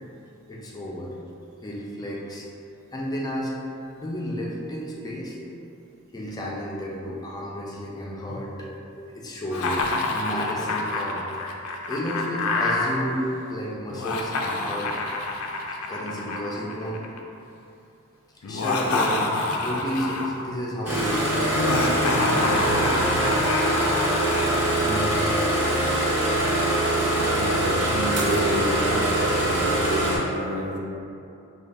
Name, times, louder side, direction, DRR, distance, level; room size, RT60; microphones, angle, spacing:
voice 1, 0.5-1.1 1.6-2.5 2.9-3.5 4.0-5.4 6.1-11.2 11.6-15.0 15.5-15.6 15.9-17.1 18.3-23.0, equal, 20° left, -3 dB, 0.4 m, -32 dB
Laughter, 9.5-12.9 13.9-17.2 18.4-20.4 21.5-24.5, left 2 dB, 80° left, 0.4 m, -27 dB
Engine starting, 20.8-30.2, right 1 dB, 5° right, 1.1 m, -23 dB
voice 2, 24.9-25.3 27.1-30.8, right 1 dB, 65° right, -2 dB, 0.6 m, -29 dB
sound 1, 28.1-28.8, right 1 dB, 30° right, 1.0 m, -41 dB
4.9 x 2.3 x 3.3 m, 2.7 s
head